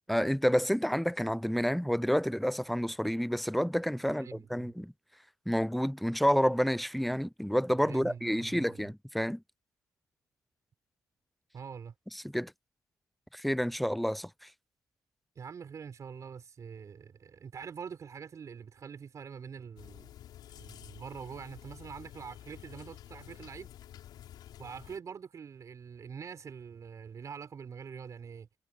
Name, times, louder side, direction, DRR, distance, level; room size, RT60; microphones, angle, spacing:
voice 1, 0.1-4.9 5.5-9.4 12.2-12.5 13.3-14.3, equal, ahead, 0.5 m, -29 dB
voice 2, 4.1-4.8 7.8-8.9 11.5-11.9 15.3-20.1 20.5-23.7 24.6-28.5, right 6 dB, 50° right, 4.8 m, -45 dB
sound 1, 19.8-25.0, left 12 dB, 85° left, 5.9 m, -50 dB
cardioid pair, 85°, 7 cm